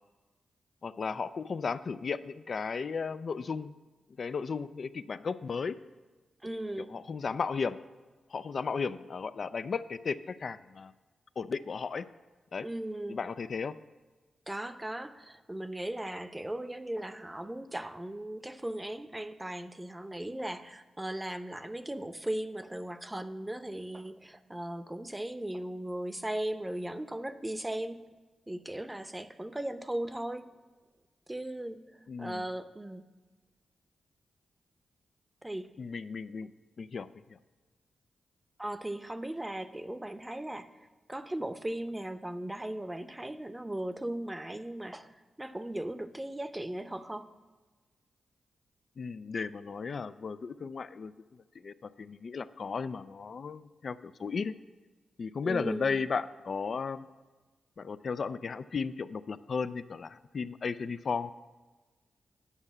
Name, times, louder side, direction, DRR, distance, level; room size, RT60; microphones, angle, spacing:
voice 1, 0.8-3.7 4.2-5.8 6.9-7.8 8.3-10.9 11.4-12.1 12.5-12.7 13.1-13.8 32.1-32.4 35.8-36.5 36.8-37.1 49.0-51.1 51.6-54.6 55.2-57.1 57.8-61.3, left 5 dB, 60° left, 12 dB, 0.4 m, -35 dB
voice 2, 6.4-6.9 12.6-13.2 14.5-28.0 28.5-30.5 31.3-31.8 32.2-33.0 35.4-35.7 38.6-40.7 41.1-45.1 45.4-47.3 55.4-56.0, right 1 dB, 15° right, 11 dB, 0.7 m, -37 dB
9.9 x 5.4 x 7.2 m, 1.3 s
cardioid pair, 55°, 0 cm